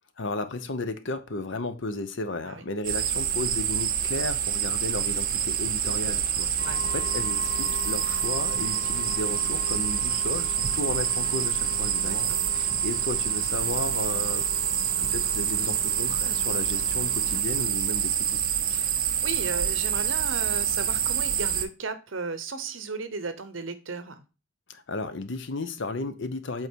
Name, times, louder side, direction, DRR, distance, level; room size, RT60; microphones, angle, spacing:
voice 1, 0.2-14.5 15.0-18.4 24.7-26.7, left 2 dB, 65° left, 0.8 m, -34 dB
sound 1, 2.8-21.7, right 9 dB, 45° right, 0.7 m, -27 dB
sound 2, 6.6-17.4, left 6 dB, 20° left, 2.0 m, -42 dB
voice 2, 12.0-12.4 18.7-24.2, right 4 dB, 70° right, 0.9 m, -35 dB
8.0 x 3.8 x 4.6 m
head